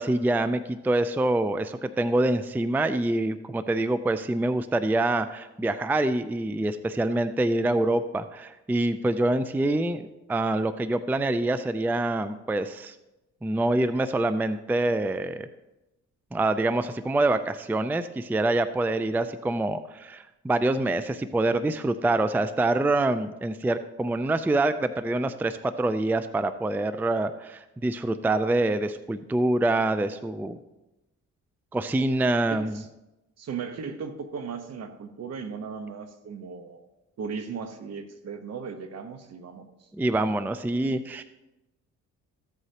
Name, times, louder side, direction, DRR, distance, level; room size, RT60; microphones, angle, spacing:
voice 1, 0.0-10.0 10.3-12.9 13.4-15.5 16.3-30.6 31.7-32.8 39.9-41.2, right 2 dB, 5° right, 12 dB, 0.4 m, -25 dB
voice 2, 32.5-32.9 33.4-36.9 37.2-39.7 40.8-41.0, right 5 dB, 55° right, 8 dB, 1.2 m, -37 dB
14.0 x 8.0 x 2.9 m, 0.98 s
cardioid pair, 90°, 30 cm